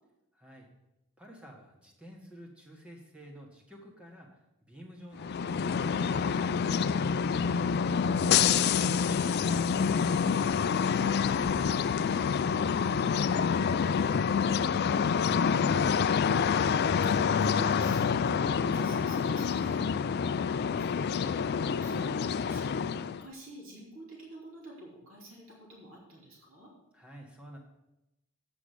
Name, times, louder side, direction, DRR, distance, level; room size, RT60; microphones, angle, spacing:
voice 1, 0.3-0.7 1.2-4.3 4.6-6.5 8.0-12.0 12.4-14.1 26.9-27.6, equal, 5° right, -1 dB, 1.6 m, -51 dB
sound 1, 5.1-23.2, left 6 dB, 45° left, 0.3 m, -27 dB
voice 2, 7.4-8.1 15.1-19.8 20.7-26.7, right 1 dB, 60° right, -4 dB, 3.1 m, -48 dB
8.6 x 6.1 x 6.6 m, 0.91 s
head